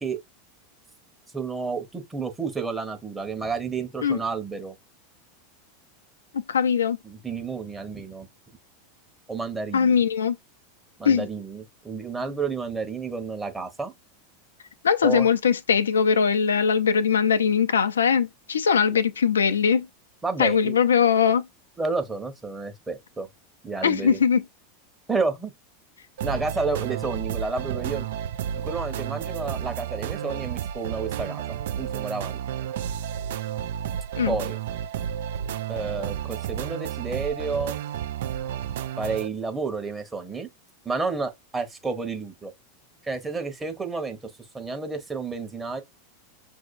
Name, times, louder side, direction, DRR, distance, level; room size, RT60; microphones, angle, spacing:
voice 1, 1.3-4.7 7.0-8.3 9.3-10.0 11.0-13.9 15.0-15.3 18.9-19.0 20.2-20.7 21.8-23.3 23.6-24.2 25.1-25.5 26.2-28.1 28.6-31.4 31.8-32.4 34.3-34.6 35.7-37.8 39.0-40.5 40.8-42.5 43.0-44.3 44.5-45.8, right 4 dB, 15° right, 1.0 m, -30 dB
voice 2, 6.5-7.0 9.7-10.4 11.0-11.3 14.8-19.9 20.4-21.5 23.8-24.4 34.2-34.4, left 7 dB, 75° left, 0.3 m, -21 dB
sound 1, 26.2-39.3, right 9 dB, 60° right, 0.3 m, -31 dB
6.2 x 2.7 x 2.6 m
figure-of-eight pair, 85°, 0 cm